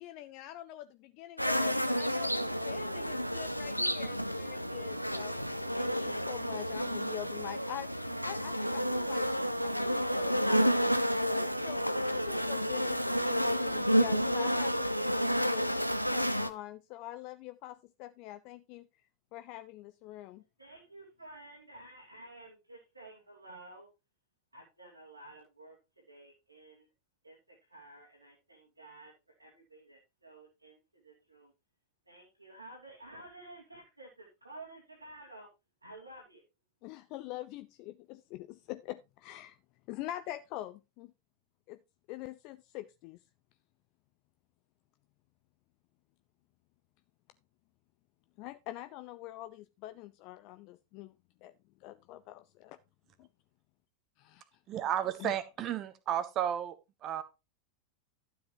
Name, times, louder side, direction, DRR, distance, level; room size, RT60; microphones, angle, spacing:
voice 1, 0.0-5.4 5.7-9.3 9.6-10.9 11.3-20.4 36.8-39.6 39.9-41.1 41.7-41.8 42.1-43.2 48.4-51.5 51.8-52.8 53.2-53.3 54.2-54.6 55.2-55.3, left 14 dB, 40° left, 12 dB, 0.5 m, -45 dB
sound 1, 1.4-16.5, equal, 90° left, 0.6 m, -30 dB
voice 2, 20.6-23.9 24.5-26.9 27.2-31.5 32.1-35.5 35.8-36.4, right 2 dB, 85° right, -2 dB, 3.0 m, -52 dB
voice 3, 54.7-56.8 57.0-57.2, right 10 dB, 35° right, 12 dB, 1.2 m, -33 dB
12.0 x 7.7 x 3.0 m, 0.25 s
figure-of-eight pair, 90°, 0 cm